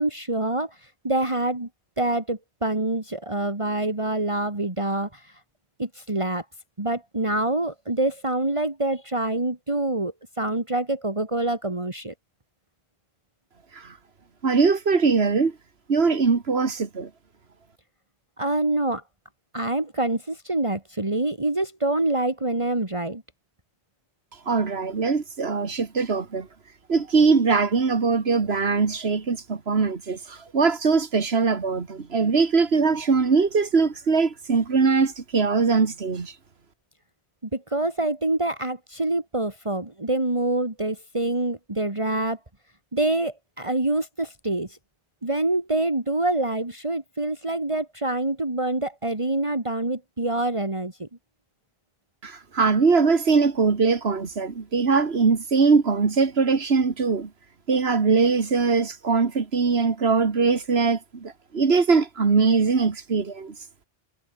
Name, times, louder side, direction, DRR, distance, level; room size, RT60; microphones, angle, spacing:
voice 1, 0.0-1.7 2.0-5.4 5.8-6.4 6.8-12.1 18.4-19.0 19.5-23.2 37.5-42.4 42.9-44.8 45.2-51.1, right 2 dB, 30° right, 2.8 m, -26 dB
voice 2, 14.4-15.5 15.9-17.1 24.5-26.5 26.9-36.3 52.2-57.3 57.7-63.5, right 4 dB, 70° right, 2.0 m, -21 dB
omnidirectional pair, 1.1 m